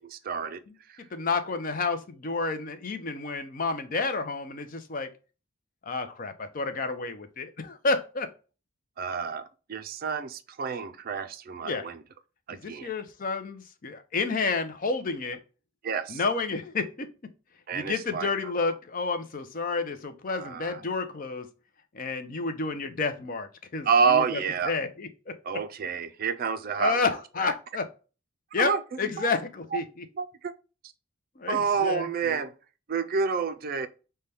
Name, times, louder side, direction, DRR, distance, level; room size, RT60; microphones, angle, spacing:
voice 1, 0.2-0.6 9.0-9.4 9.7-12.0 12.5-12.9 15.8-16.2 17.7-18.5 20.3-20.8 23.8-24.7 25.4-27.0 28.6-28.8 29.2-29.3 30.2-30.5 31.5-32.5 32.9-33.9, right 5 dB, 45° right, 0.4 m, -28 dB
voice 2, 1.1-5.1 5.9-8.3 11.6-11.9 12.6-15.4 16.1-17.3 17.7-21.5 21.9-25.3 26.8-27.9 28.5-28.7 29.0-30.0 31.4-32.4, left 4 dB, 40° left, 0.5 m, -30 dB
5.5 x 2.2 x 3.3 m
head